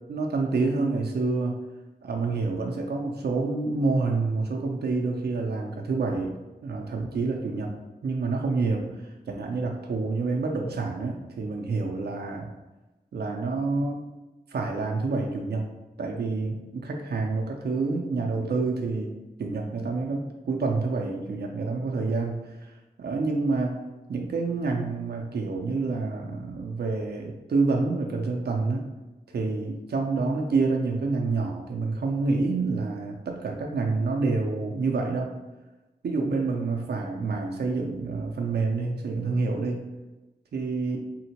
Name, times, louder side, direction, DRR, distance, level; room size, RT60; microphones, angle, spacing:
voice 1, 0.1-1.5 2.0-6.3 6.6-7.7 8.0-12.5 13.1-14.0 14.5-15.7 16.0-22.7 23.0-23.8 24.1-28.9 29.3-35.3 36.0-39.8 40.5-41.0, right 3 dB, 85° right, 1 dB, 0.4 m, -28 dB
3.7 x 2.1 x 2.8 m, 1.1 s
cardioid pair, 40°, 16 cm